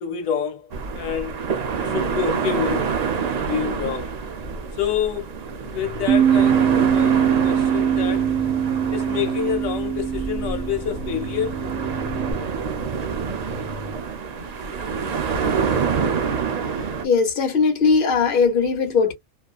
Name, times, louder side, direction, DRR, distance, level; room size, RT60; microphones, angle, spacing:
voice 1, 0.0-2.9 3.5-4.1 4.7-5.3 5.6-8.4 8.9-11.6, left 8 dB, 85° left, 1.1 m, -28 dB
sound 1, 0.7-17.1, right 6 dB, 55° right, 0.4 m, -27 dB
sound 2, 5.4-14.0, left 2 dB, 15° right, 1.0 m, -39 dB
Bass guitar, 6.1-12.3, right 9 dB, 75° right, 1.0 m, -22 dB
voice 2, 17.0-19.1, left 5 dB, 45° left, 1.0 m, -19 dB
2.6 x 2.3 x 2.3 m
omnidirectional pair, 1.4 m